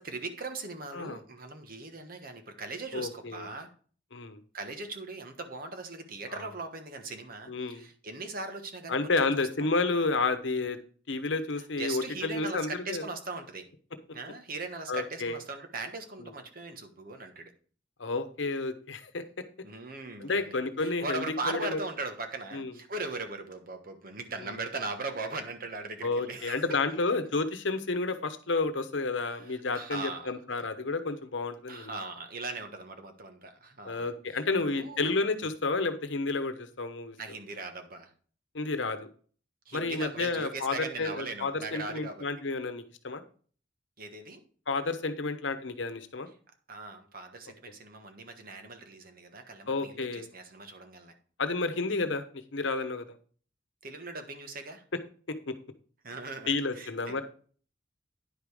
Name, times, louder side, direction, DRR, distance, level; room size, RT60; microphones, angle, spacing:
voice 1, 0.0-3.7 4.5-9.7 11.8-13.7 14.1-17.5 19.6-26.8 29.1-30.3 31.7-35.2 37.2-38.1 39.6-42.3 44.0-44.4 46.7-51.1 53.8-54.8 56.0-57.2, right 3 dB, 50° right, 6 dB, 1.3 m, -39 dB
voice 2, 2.9-3.5 4.1-4.4 6.3-6.4 7.5-7.9 8.9-10.8 11.1-13.1 14.9-15.4 16.2-16.3 18.0-19.2 20.2-21.8 22.5-22.7 24.4-24.5 26.0-31.9 33.8-37.2 38.5-39.0 39.7-43.2 44.7-46.3 49.7-50.3 51.4-52.2 52.5-53.1 55.5-55.6 56.5-57.2, left 3 dB, 85° left, 9 dB, 1.0 m, -31 dB
9.9 x 5.2 x 4.9 m, 0.43 s
head